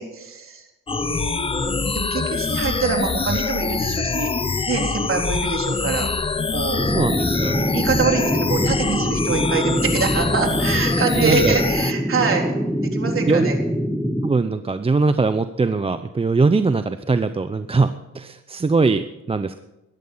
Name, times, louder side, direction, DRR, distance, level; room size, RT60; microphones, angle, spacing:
voice 1, 0.0-6.1 6.5-6.9 7.6-12.5 12.8-13.6, right 4 dB, 45° right, 2 dB, 3.8 m, -25 dB
sound 1, 0.9-11.9, left 4 dB, 20° left, 0.6 m, -24 dB
sound 2, 6.8-14.3, equal, ahead, 1.2 m, -24 dB
voice 2, 6.8-7.8 11.2-11.6 13.3-13.5 14.2-19.6, right 4 dB, 20° right, 10 dB, 0.7 m, -21 dB
16.5 x 13.0 x 5.6 m, 0.94 s
cardioid pair, 90°, 30 cm